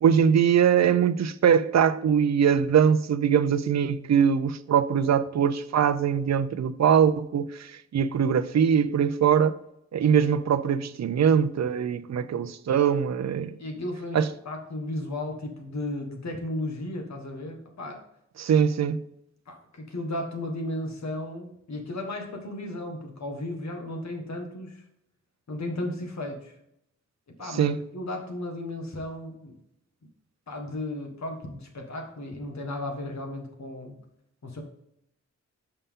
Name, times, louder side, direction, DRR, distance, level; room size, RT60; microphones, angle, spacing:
voice 1, 0.0-9.5 9.9-13.5 14.1-14.3 18.4-19.0 27.6-27.8, right 8 dB, 65° right, 0.5 m, -22 dB
voice 2, 13.6-18.0 19.5-24.8 25.5-26.5 27.4-29.6 30.5-34.0 34.4-34.6, left 1 dB, 70° left, 1.6 m, -34 dB
6.9 x 5.5 x 3.7 m
wide cardioid pair, 85°, 29 cm